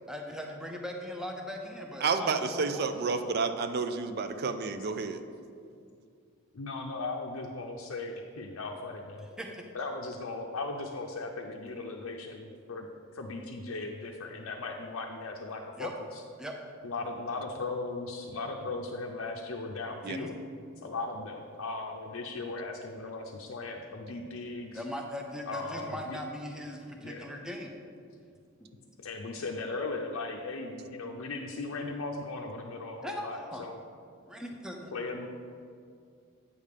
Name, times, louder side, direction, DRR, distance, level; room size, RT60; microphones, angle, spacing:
voice 1, 0.1-2.8 3.2-3.3 9.4-9.7 15.8-15.9 16.4-16.5 20.0-20.3 24.7-27.8 33.0-33.7 34.3-34.9, equal, 5° right, 1 dB, 0.6 m, -39 dB
voice 2, 2.0-5.2 20.0-20.2, right 4 dB, 45° right, 9 dB, 0.4 m, -30 dB
voice 3, 6.5-9.3 9.7-12.9 13.1-16.2 16.8-20.4 20.8-24.8 25.5-26.2 27.0-27.3 29.0-33.8 34.9-35.3, left 3 dB, 65° left, 0 dB, 0.5 m, -37 dB
8.5 x 3.5 x 6.6 m, 2.4 s
head